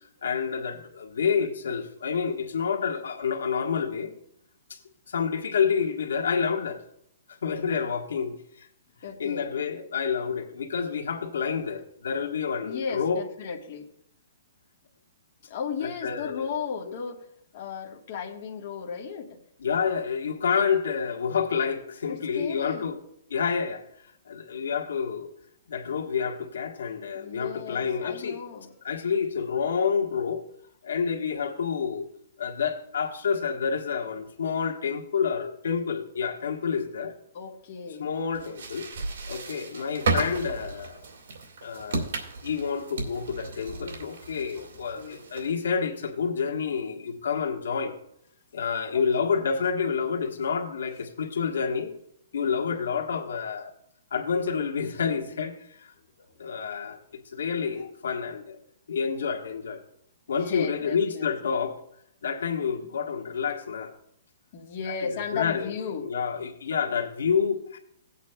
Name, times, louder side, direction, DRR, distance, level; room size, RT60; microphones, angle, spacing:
voice 1, 0.2-4.1 4.7-4.8 5.1-6.8 7.3-8.7 9.2-13.2 16.0-16.5 19.6-23.0 23.3-23.8 24.3-25.3 25.7-28.4 28.8-30.4 30.8-32.1 32.4-37.1 38.0-38.9 39.3-41.0 41.6-42.1 42.4-47.9 48.5-51.9 52.3-53.7 54.1-55.9 56.4-57.0 57.3-58.6 58.9-59.8 60.3-61.8 62.2-63.9 64.8-65.7 66.0-67.8, left 6 dB, 85° left, 1.3 m, -28 dB
voice 2, 9.0-9.5 12.6-13.9 15.5-17.3 17.5-19.4 22.1-22.9 27.1-28.7 37.3-38.1 44.6-45.2 48.9-49.3 54.8-55.0 56.2-56.3 57.7-57.9 60.4-61.5 64.5-66.1, left 6 dB, 40° left, 1.4 m, -36 dB
sound 1, 38.3-45.7, right 3 dB, 60° right, 2.0 m, -34 dB
17.5 x 8.3 x 2.3 m
hypercardioid pair, 170°, 0 cm